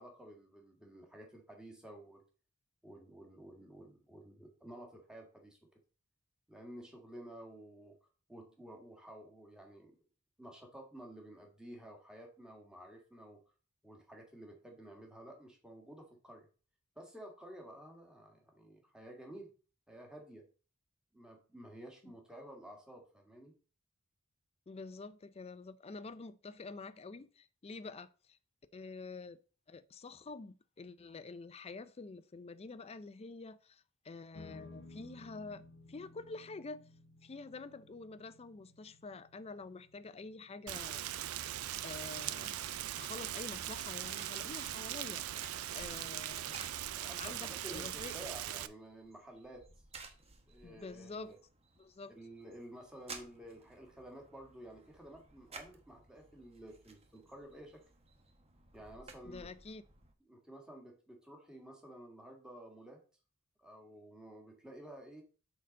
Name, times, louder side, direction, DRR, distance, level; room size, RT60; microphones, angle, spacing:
voice 1, 0.0-2.2 2.8-5.6 6.5-8.0 8.3-9.9 10.4-13.4 13.8-16.5 16.9-19.5 19.9-20.5 21.1-23.5 46.9-49.6 50.5-51.4 52.2-57.8 58.7-59.5 60.3-63.0 63.6-65.2, right 1 dB, 5° right, 1.6 m, -52 dB
voice 2, 24.7-28.4 28.7-29.4 29.7-36.9 37.2-42.6 42.9-48.1 50.6-51.3 51.8-52.1 59.2-59.8, left 3 dB, 30° left, 0.4 m, -48 dB
sound 1, 34.3-46.9, left 2 dB, 65° left, 0.9 m, -59 dB
Rain, 40.7-48.7, right 12 dB, 85° right, 0.4 m, -40 dB
sound 2, 46.4-60.1, right 4 dB, 30° right, 1.0 m, -57 dB
6.5 x 4.0 x 5.2 m
head